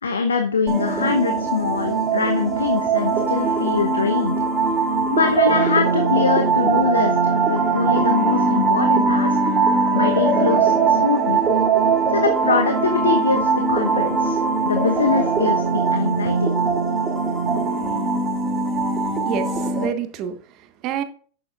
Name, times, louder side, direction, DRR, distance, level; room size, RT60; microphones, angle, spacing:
voice 1, 0.0-4.4 5.1-9.4 9.9-11.4 12.1-16.5, left 5 dB, 70° left, 0.9 m, -23 dB
sound 1, 0.7-19.9, right 4 dB, 20° right, 3.0 m, -20 dB
voice 2, 19.2-21.0, right 9 dB, 40° right, 1.4 m, -28 dB
11.0 x 8.6 x 2.4 m
figure-of-eight pair, 90°, 0 cm